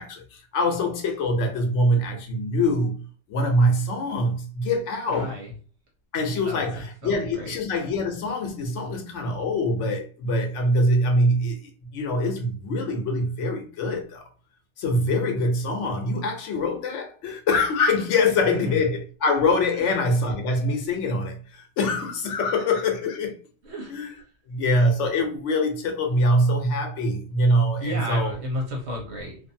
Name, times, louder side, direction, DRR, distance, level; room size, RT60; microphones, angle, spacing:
voice 1, 0.0-3.0 3.3-5.4 6.1-14.2 14.8-23.3 23.9-24.1 24.5-28.3, left 1 dB, 85° left, 1.0 m, -24 dB
voice 2, 5.1-5.5 6.4-6.7 7.0-7.6 18.6-18.8 23.6-23.9 27.8-29.4, left 1 dB, 70° right, 1.1 m, -32 dB
2.6 x 2.4 x 2.6 m
omnidirectional pair, 1.2 m